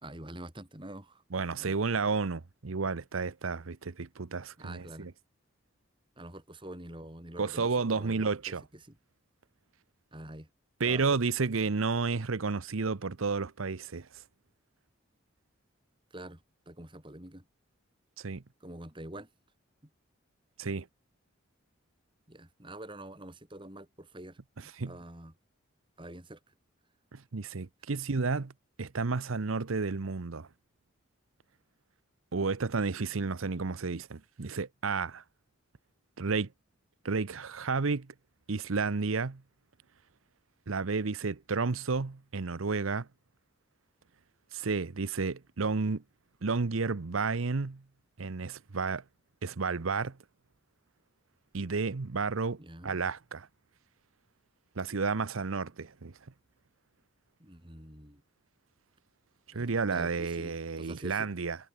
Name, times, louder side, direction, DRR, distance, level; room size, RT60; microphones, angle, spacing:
voice 1, 0.0-1.2 1.6-1.8 4.6-5.1 6.2-8.4 8.7-9.0 10.1-10.5 10.8-11.0 16.1-17.4 18.6-19.3 22.3-25.3 26.0-26.5 52.6-53.0 57.4-58.2 59.5-61.3, right 1 dB, 25° right, 2.8 m, -46 dB
voice 2, 1.3-5.1 7.4-8.6 10.8-14.1 18.2-18.4 20.6-20.9 24.8-24.9 27.1-28.5 28.8-30.5 32.3-35.2 36.2-36.5 37.0-38.1 38.5-39.4 40.7-43.1 44.5-46.0 46.4-47.8 48.2-49.0 49.4-50.2 51.5-53.5 54.8-56.1 59.5-61.6, right 4 dB, 90° right, 0.8 m, -31 dB
head